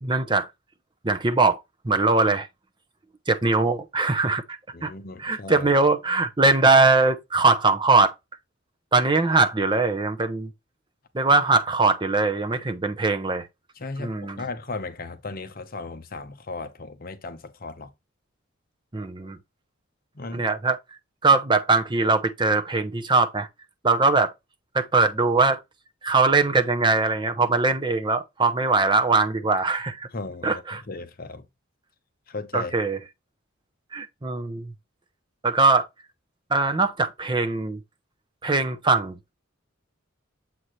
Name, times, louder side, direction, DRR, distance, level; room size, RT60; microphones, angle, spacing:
voice 1, 0.0-0.5 1.0-2.5 3.3-4.9 5.2-8.1 8.9-10.5 11.1-13.5 14.0-14.4 18.9-19.4 20.3-20.8 21.2-23.5 23.8-24.3 24.7-25.6 26.0-30.1 30.4-30.8 32.5-33.0 33.9-34.7 35.4-35.9 36.5-37.8 38.4-39.1, right 3 dB, 25° right, 0.7 m, -21 dB
voice 2, 4.7-5.7 13.8-17.9 20.1-20.4 30.1-30.6 30.9-31.4 32.3-32.7, left 3 dB, 45° left, 0.9 m, -36 dB
7.6 x 4.1 x 3.1 m
head